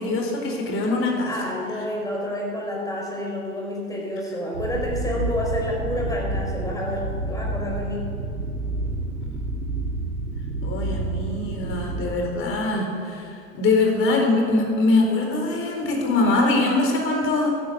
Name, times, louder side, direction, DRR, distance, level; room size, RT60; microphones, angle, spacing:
voice 1, 0.0-1.3 10.6-17.6, left 2 dB, 30° left, 1 dB, 4.3 m, -23 dB
voice 2, 1.3-8.0, left 1 dB, 10° left, -2 dB, 5.2 m, -29 dB
sound 1, 4.5-12.1, right 2 dB, 85° right, 2.2 m, -29 dB
13.5 x 11.0 x 8.5 m, 2.4 s
figure-of-eight pair, 100°, 43 cm